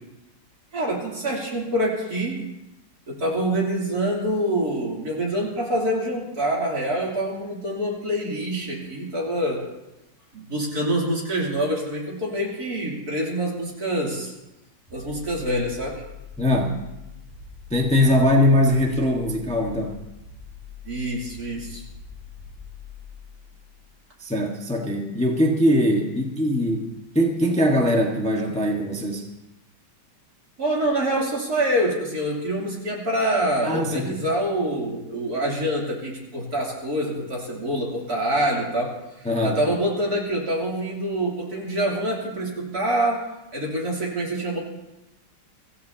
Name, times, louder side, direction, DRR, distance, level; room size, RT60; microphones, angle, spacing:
voice 1, 0.7-2.4 3.1-9.7 10.3-14.3 14.9-16.0 20.9-21.8 30.6-43.2 43.5-44.6, right 1 dB, 60° right, -3 dB, 3.7 m, -26 dB
sound 1, 14.9-24.0, left 6 dB, 20° right, 7.7 m, -43 dB
voice 2, 16.4-16.7 17.7-20.0 24.2-29.2 33.6-34.2 39.2-39.6, left 1 dB, 5° left, 0 dB, 1.3 m, -21 dB
24.5 x 15.0 x 2.9 m, 0.95 s
omnidirectional pair, 1.9 m